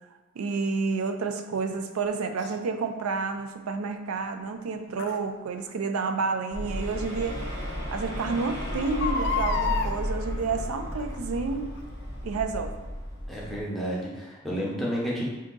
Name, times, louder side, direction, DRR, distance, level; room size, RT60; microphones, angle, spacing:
voice 1, 0.4-7.4 7.9-11.7 12.2-12.8, right 4 dB, 75° right, 6 dB, 0.4 m, -30 dB
Crying sobbing, 2.4-2.5 5.0-5.2 6.8-6.9 7.4-7.5 7.7-7.8 8.8-9.9 10.9-11.2 11.8-11.9, left 5 dB, 50° left, 0.3 m, -29 dB
sound 1, 6.5-13.6, equal, 50° right, 1.4 m, -33 dB
voice 2, 13.3-15.3, equal, ahead, -6 dB, 0.7 m, -31 dB
3.5 x 2.7 x 3.8 m, 1.1 s
head